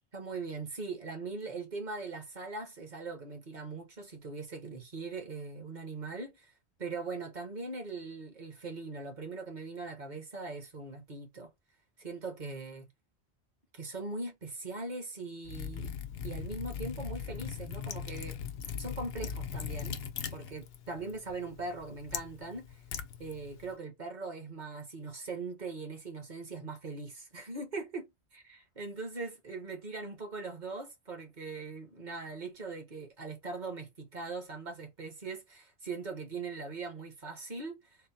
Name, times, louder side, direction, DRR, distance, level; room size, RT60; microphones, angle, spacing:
voice 1, 0.1-6.5 6.8-11.5 12.0-12.9 13.7-15.9 16.2-18.4 18.8-20.0 20.3-22.8 23.2-28.1 28.3-38.0, right 3 dB, 45° right, 1.2 m, -41 dB
Liquid, 15.4-23.7, left 7 dB, 65° left, 0.8 m, -40 dB
3.8 x 2.1 x 4.1 m
omnidirectional pair, 1.1 m